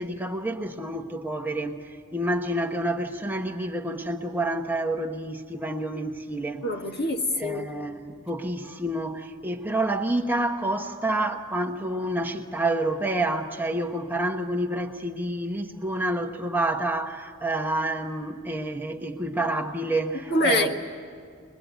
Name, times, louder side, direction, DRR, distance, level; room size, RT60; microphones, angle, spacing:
voice 1, 0.0-6.6 7.4-20.7, right 1 dB, 10° right, 3 dB, 1.1 m, -28 dB
voice 2, 6.6-7.7 20.3-20.7, left 1 dB, 50° left, 4 dB, 1.7 m, -25 dB
23.0 x 22.0 x 9.3 m, 2.2 s
head